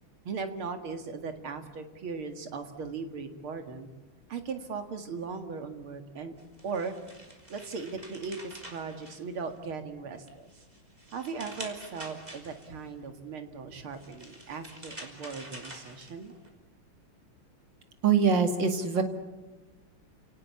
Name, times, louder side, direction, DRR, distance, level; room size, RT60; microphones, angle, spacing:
voice 1, 0.2-3.9 4.3-6.3 6.6-7.0 7.5-10.5 11.1-16.3, right 5 dB, 85° right, 7 dB, 2.9 m, -38 dB
sound 1, 6.4-9.7 10.2-12.9 13.8-16.5, right 1 dB, 20° right, 3.6 m, -47 dB
voice 2, 18.0-19.0, right 6 dB, 60° right, 6 dB, 2.8 m, -23 dB
30.0 x 18.5 x 8.5 m, 1.2 s
omnidirectional pair, 2.3 m